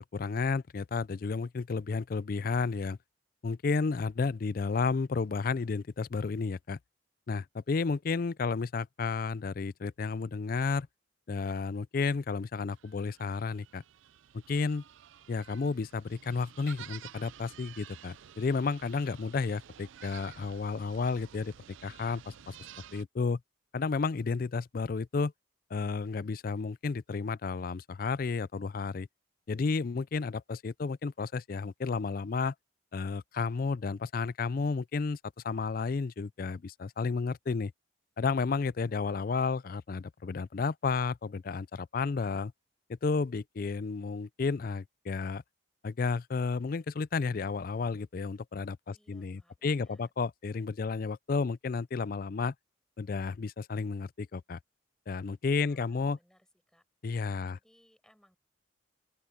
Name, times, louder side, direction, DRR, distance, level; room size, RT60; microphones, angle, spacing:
voice 1, 0.0-3.0 3.4-6.8 7.3-10.9 11.3-13.8 14.3-14.8 15.3-21.5 21.8-22.5 22.9-23.4 23.7-25.3 25.7-29.1 29.5-32.5 32.9-35.2 35.4-37.7 38.2-42.5 42.9-45.4 45.8-52.5 53.0-54.6 55.1-56.2 57.0-57.6, left 4 dB, 45° left, 0.4 m, -32 dB
sound 1, 12.7-23.0, right 10 dB, 75° right, 0.4 m, -52 dB
voice 2, 48.9-50.1 55.6-56.8 57.5-58.4, equal, 5° left, 7.9 m, -67 dB
open air
head